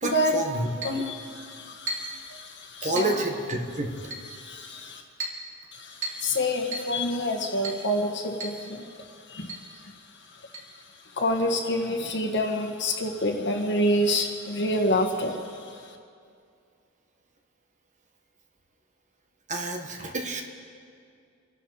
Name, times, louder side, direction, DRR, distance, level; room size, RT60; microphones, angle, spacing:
voice 1, 0.0-0.7 2.8-3.9 19.5-20.4, right 2 dB, 35° right, 2 dB, 1.5 m, -29 dB
voice 2, 0.8-3.1 4.3-5.0 5.7-8.9 9.3-9.5 11.2-15.4, left 1 dB, 55° left, 3 dB, 1.8 m, -27 dB
Chink clink, 0.8-1.0 1.9-2.2 3.0-3.2 4.1-4.3 5.2-5.4 6.0-6.3 6.7-6.9 7.6-7.8 8.4-8.6 8.9-9.0 9.5-9.6 10.5-10.6, right 2 dB, 60° right, 3.4 m, -34 dB
27.0 x 11.5 x 4.2 m, 2.3 s
head